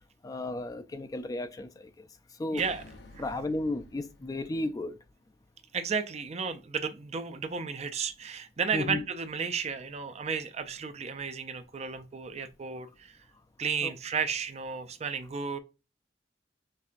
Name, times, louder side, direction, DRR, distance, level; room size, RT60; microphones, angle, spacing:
voice 1, 0.2-2.1 2.4-2.6 3.2-5.0 8.7-9.0 13.8-13.9, left 2 dB, 20° left, 0.3 m, -33 dB
voice 2, 2.5-2.8 5.7-13.2 13.6-15.6, right 5 dB, 40° right, 0.5 m, -33 dB
sound 1, 2.6-5.1, left 2 dB, 80° left, 0.7 m, -52 dB
5.4 x 3.2 x 2.4 m
head